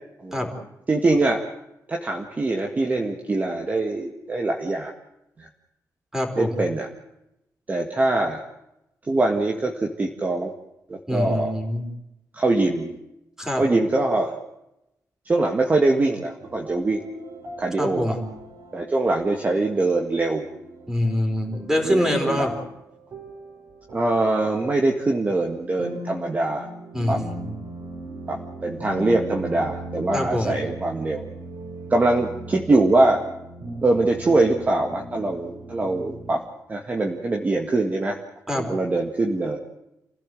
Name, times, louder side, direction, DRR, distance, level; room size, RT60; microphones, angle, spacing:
voice 1, 0.9-1.4 1.9-4.9 5.4-5.5 6.4-6.9 7.7-8.4 9.1-10.5 10.9-11.5 12.3-13.0 13.6-14.4 15.3-17.0 17.6-18.2 18.7-20.4 21.7-22.5 23.9-26.7 27.1-27.2 28.3-31.2 31.9-33.2 33.8-36.4 36.7-38.2 38.5-39.6, right 2 dB, 25° right, 2 dB, 2.0 m, -23 dB
voice 2, 6.1-6.6 11.1-11.9 13.4-13.7 17.8-18.2 20.9-22.6 26.9-27.5 30.1-30.6 38.5-38.7, left 1 dB, 5° right, 3 dB, 4.5 m, -25 dB
sound 1, 16.4-36.3, right 1 dB, 60° right, 4.9 m, -39 dB
28.5 x 16.5 x 7.8 m, 0.89 s
wide cardioid pair, 170°, 7 cm